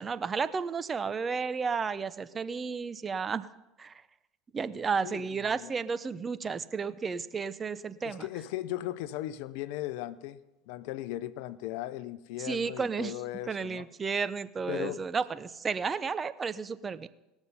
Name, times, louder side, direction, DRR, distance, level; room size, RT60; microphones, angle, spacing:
voice 1, 0.0-3.5 3.8-3.9 4.5-8.3 12.4-13.1 13.5-17.1, right 5 dB, 30° right, 0.6 m, -32 dB
voice 2, 8.0-10.4 10.7-13.9 14.7-15.0, left 14 dB, 70° left, 0.6 m, -37 dB
19.5 x 7.1 x 5.5 m
hypercardioid pair, 85°, 0 cm